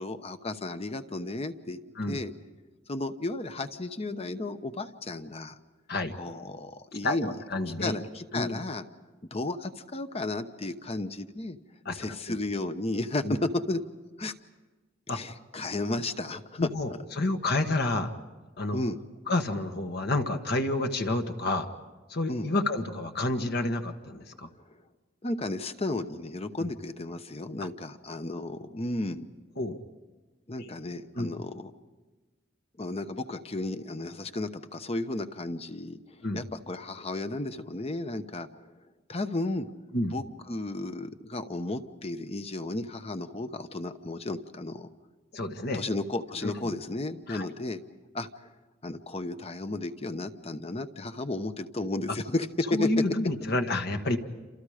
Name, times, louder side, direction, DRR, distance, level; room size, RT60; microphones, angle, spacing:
voice 1, 0.0-1.8 2.1-2.3 2.9-5.6 6.2-7.3 7.8-8.8 9.3-11.6 11.9-13.8 14.2-14.3 15.1-16.6 18.7-19.0 22.3-22.5 25.2-29.2 30.5-31.7 32.8-36.0 36.3-38.7 39.1-39.7 40.1-44.9 45.7-47.8 48.1-48.3 48.8-52.9, left 2 dB, 30° left, 9 dB, 1.0 m, -33 dB
voice 2, 7.0-7.9 8.3-8.6 11.8-12.0 12.3-12.4 13.2-13.3 15.1-15.2 16.6-18.1 18.6-18.8 19.3-21.7 22.1-24.5 26.6-26.7 29.6-29.8 31.1-31.3 36.2-36.4 39.9-40.2 45.3-45.8 46.4-46.7 47.3-47.5 52.7-54.2, left 2 dB, 55° left, 6 dB, 1.5 m, -29 dB
29.0 x 27.5 x 5.0 m, 1.3 s
head